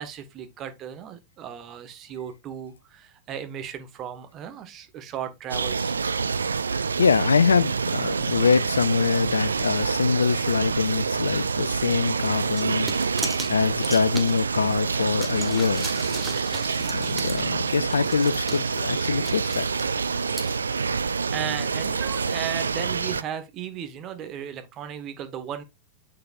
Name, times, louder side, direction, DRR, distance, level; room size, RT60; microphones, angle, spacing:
voice 1, 0.0-5.9 21.0-25.6, right 9 dB, 35° right, 1.3 m, -36 dB
sound 1, 5.5-23.2, right 5 dB, 75° right, 0.3 m, -27 dB
voice 2, 7.0-12.9 13.5-15.9 16.9-19.7, left 5 dB, 70° left, 0.3 m, -24 dB
sound 2, 12.6-14.7 15.1-20.6, right 2 dB, 10° right, 1.1 m, -37 dB
6.7 x 6.6 x 2.4 m
figure-of-eight pair, 90°, 0 cm